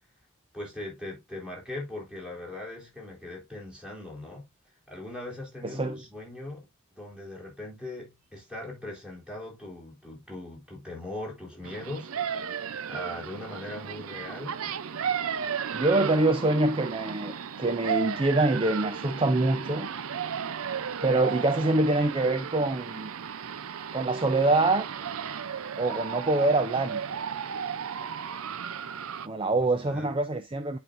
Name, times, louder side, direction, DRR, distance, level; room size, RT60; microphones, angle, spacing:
voice 1, 0.5-4.5 4.9-6.7 7.0-12.4 12.9-14.6 29.5-30.1, left 1 dB, 5° right, 3.7 m, -40 dB
voice 2, 5.6-6.0 15.7-19.9 21.0-23.1 23.9-24.9 25.8-27.0 29.2-30.8, right 2 dB, 25° right, 0.6 m, -25 dB
sound 1, 11.6-29.3, right 7 dB, 85° right, 0.6 m, -34 dB
10.5 x 5.1 x 2.6 m
head